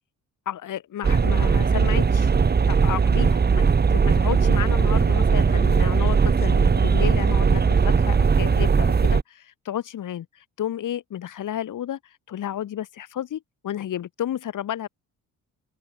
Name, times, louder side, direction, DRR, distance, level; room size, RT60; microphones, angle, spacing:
voice 1, 0.4-2.3 2.7-12.0 12.3-14.9, left 11 dB, 65° left, 6.4 m, -32 dB
sound 1, 1.0-9.2, right 5 dB, 30° right, 1.7 m, -19 dB
open air
cardioid pair, 95°, 33 cm